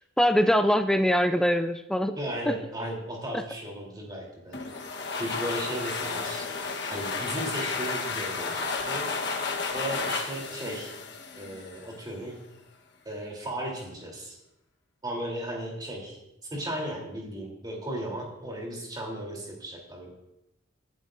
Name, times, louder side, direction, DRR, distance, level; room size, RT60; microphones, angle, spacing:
voice 1, 0.2-2.2 2.5-2.6 3.3-3.4, equal, 5° left, 9 dB, 0.4 m, -23 dB
voice 2, 2.1-4.6 5.2-6.5 6.9-9.1 9.7-10.9 11.3-12.4 13.0-14.4 15.0-16.2 16.5-20.2, right 1 dB, 20° right, -2 dB, 3.4 m, -35 dB
sound 1, 4.5-12.0, left 4 dB, 55° left, 1.3 m, -32 dB
24.5 x 11.5 x 2.6 m, 0.89 s
head